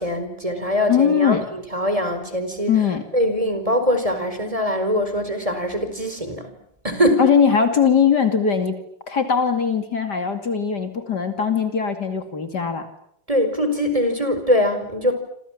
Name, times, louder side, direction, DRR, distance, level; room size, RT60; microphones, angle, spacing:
voice 1, 0.0-2.7 3.1-6.5 6.8-7.2 13.3-15.1, equal, 15° right, 8 dB, 4.9 m, -22 dB
voice 2, 0.9-1.5 2.7-3.0 7.2-8.8 9.1-12.9, left 7 dB, 60° left, 8 dB, 3.1 m, -20 dB
28.5 x 27.5 x 7.5 m, 0.72 s
omnidirectional pair, 2.0 m